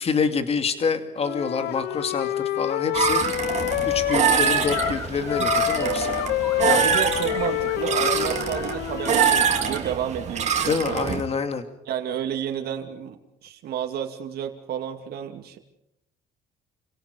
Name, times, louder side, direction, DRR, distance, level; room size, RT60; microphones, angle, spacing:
voice 1, 0.0-3.2 3.8-6.2 10.6-11.7, left 5 dB, 35° left, 8 dB, 2.5 m, -27 dB
Wind instrument woodwind instrument, 1.2-5.0 5.3-9.3, left 15 dB, 75° left, 0.8 m, -27 dB
sound 1, 2.9-11.2, right 7 dB, 45° right, 3.3 m, -24 dB
sound 2, 4.7-10.0, left 2 dB, 20° left, 2.5 m, -39 dB
voice 2, 6.6-11.1 11.9-15.6, right 9 dB, 70° right, 4 dB, 2.5 m, -31 dB
29.0 x 17.5 x 5.3 m, 0.79 s
cardioid pair, 110°, 17 cm